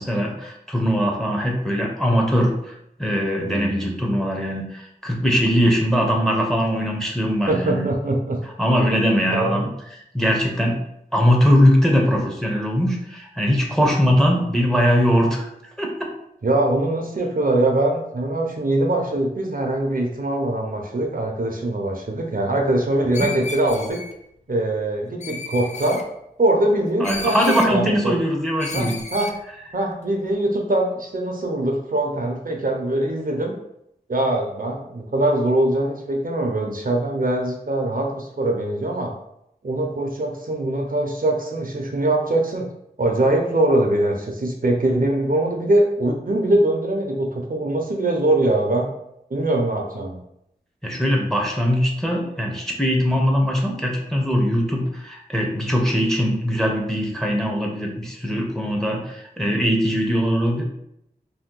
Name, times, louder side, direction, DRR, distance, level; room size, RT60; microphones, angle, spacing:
voice 1, 0.0-2.7 3.0-7.8 8.6-9.7 10.1-10.8 11.1-15.5 15.8-16.1 23.2-23.3 27.0-29.0 50.8-60.6, equal, 5° left, 0 dB, 0.7 m, -21 dB
voice 2, 3.4-4.0 7.5-8.4 9.3-9.7 16.4-24.0 24.5-26.1 26.4-28.1 28.7-29.3 29.7-33.5 34.1-39.1 39.6-42.7 43.0-48.9 49.3-50.2, right 1 dB, 60° right, 1 dB, 0.5 m, -22 dB
Screech, 23.1-24.1 25.2-26.0 27.0-27.7 28.6-29.4, left 3 dB, 45° left, 0.4 m, -33 dB
2.7 x 2.2 x 3.6 m, 0.78 s
wide cardioid pair, 45°, 17 cm